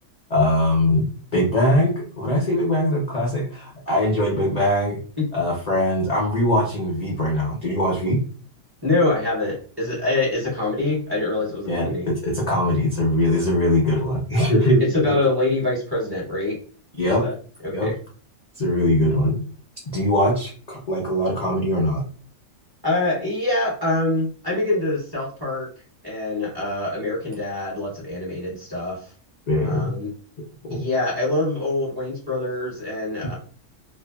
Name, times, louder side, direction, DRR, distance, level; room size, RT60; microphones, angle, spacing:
voice 1, 0.3-5.0 5.3-8.2 11.6-15.2 17.0-17.2 17.7-17.9 18.6-19.4 19.9-22.0 29.5-29.9 30.6-30.9, left 1 dB, 50° left, -2 dB, 0.5 m, -21 dB
voice 2, 8.8-12.1 14.8-16.6 17.2-17.3 17.6-17.9 22.8-25.7 26.0-29.1 29.6-30.1 30.7-33.3, left 2 dB, 20° right, -6 dB, 0.9 m, -24 dB
2.5 x 2.5 x 2.3 m, 0.41 s
omnidirectional pair, 1.4 m